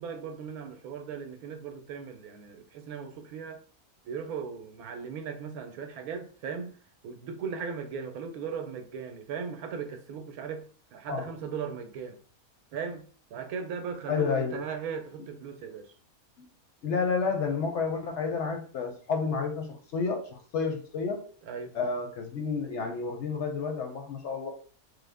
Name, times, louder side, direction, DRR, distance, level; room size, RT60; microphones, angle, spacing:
voice 1, 0.0-3.6 4.1-6.7 7.0-10.6 10.9-12.2 12.7-13.1 13.3-15.9 21.4-21.7, right 6 dB, 85° right, 1.1 m, -38 dB
voice 2, 14.1-14.6 16.4-16.5 16.8-21.3 21.7-24.5, left 5 dB, 60° left, 0.8 m, -30 dB
3.2 x 2.0 x 3.3 m
omnidirectional pair, 1.5 m